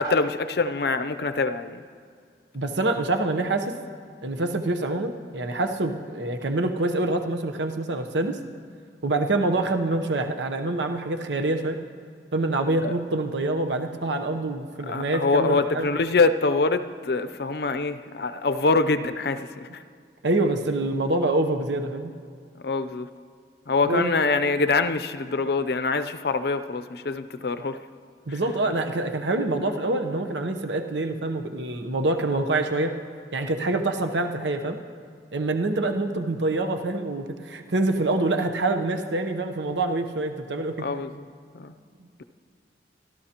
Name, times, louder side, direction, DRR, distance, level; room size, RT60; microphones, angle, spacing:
voice 1, 0.0-1.8 12.8-12.9 14.8-19.8 22.6-23.1 23.7-27.8 28.3-28.4 40.8-41.3 41.5-41.7, left 3 dB, 60° left, 10 dB, 0.5 m, -24 dB
voice 2, 2.5-3.8 4.2-8.4 9.0-11.8 12.3-15.9 20.2-22.1 23.8-24.1 28.3-32.9 33.3-34.8 35.3-40.8, right 2 dB, 80° right, 6 dB, 0.9 m, -26 dB
25.0 x 13.0 x 2.9 m, 2.2 s
head